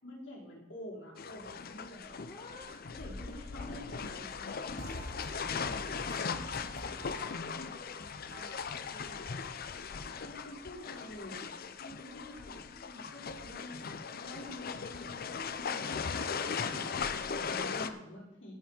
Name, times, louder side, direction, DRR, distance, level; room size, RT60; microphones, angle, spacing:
voice 1, 0.0-2.2 2.8-4.5 10.2-11.5 11.8-15.3 15.5-18.5, left 1 dB, 80° left, -5 dB, 4.5 m, -48 dB
sound 1, 1.2-17.9, left 5 dB, 50° left, 0.6 m, -38 dB
voice 2, 2.2-2.9 3.6-3.8 4.5-8.6 8.9-11.0 12.4-13.1, left 2 dB, 35° left, -2 dB, 1.8 m, -56 dB
sound 2, 4.7-7.9 8.3-9.3 9.6-11.0, right 1 dB, 85° right, 1.6 m, -50 dB
17.0 x 5.9 x 4.4 m, 0.96 s
head